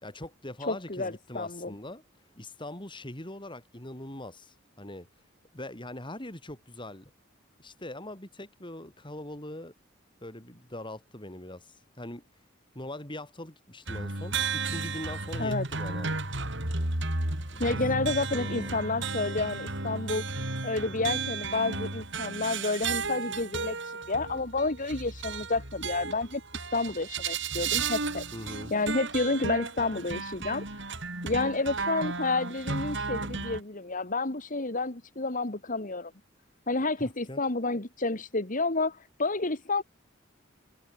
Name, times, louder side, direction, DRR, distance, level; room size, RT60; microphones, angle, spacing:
voice 1, 0.0-2.0 2.4-5.1 5.5-7.1 7.6-9.7 10.2-12.2 12.7-16.1 17.5-17.9 18.3-18.8 27.7-27.8 28.3-28.7 37.0-37.4, left 1 dB, 25° left, 6.1 m, -42 dB
voice 2, 0.7-1.7 15.4-15.6 17.6-20.2 20.6-26.4 26.7-28.2 28.7-30.9 31.2-36.1 36.7-39.8, left 3 dB, 40° left, 2.3 m, -30 dB
sound 1, 13.9-33.6, right 4 dB, 65° right, 6.0 m, -33 dB
head